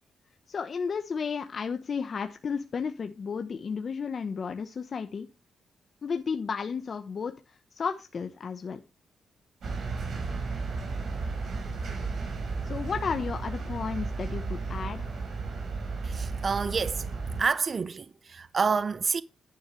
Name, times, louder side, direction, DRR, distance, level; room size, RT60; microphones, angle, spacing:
voice 1, 0.5-5.3 6.0-8.8 12.6-15.1, left 5 dB, 50° left, 1.0 m, -33 dB
sound 1, 9.6-17.5, right 4 dB, 65° right, 4.7 m, -33 dB
voice 2, 16.0-17.1 17.4-19.2, right 5 dB, 45° right, 0.5 m, -28 dB
11.0 x 9.6 x 3.2 m
cardioid pair, 95°, 0 cm